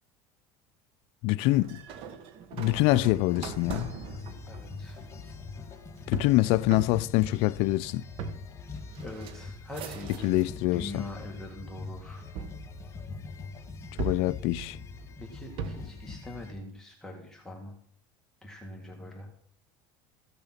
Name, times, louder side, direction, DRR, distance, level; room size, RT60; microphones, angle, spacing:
voice 1, 1.2-1.8 2.5-4.0 6.1-8.0 10.2-11.0 14.0-14.8, left 18 dB, 65° left, 0.5 m, -25 dB
sound 1, 1.4-10.6 11.0-11.6 12.4-13.4 14.0-16.0, right 6 dB, 55° right, 1.3 m, -41 dB
sound 2, 2.6-16.5, left 4 dB, 25° left, 1.4 m, -43 dB
voice 2, 4.5-5.0 9.0-10.3 10.7-12.3 15.2-17.8 18.4-19.3, left 1 dB, 5° left, 1.8 m, -43 dB
14.5 x 6.8 x 5.9 m
supercardioid pair, 125°, 11 cm